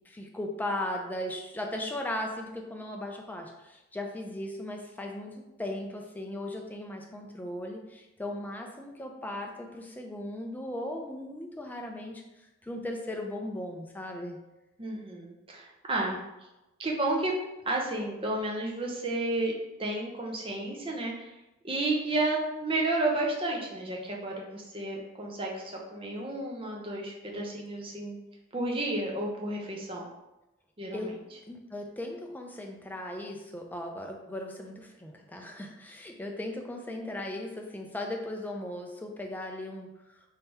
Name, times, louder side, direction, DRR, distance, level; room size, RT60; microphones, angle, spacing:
voice 1, 0.1-5.3 5.6-12.2 12.6-14.4 16.1-16.2 30.9-31.1 31.5-39.9, left 1 dB, 10° left, 2 dB, 0.4 m, -37 dB
voice 2, 14.8-16.2 16.8-17.4 17.6-19.5 19.8-21.3 21.6-28.2 28.5-30.1 30.8-31.1, right 2 dB, 25° right, -1 dB, 0.7 m, -31 dB
3.6 x 2.8 x 4.4 m, 0.98 s
head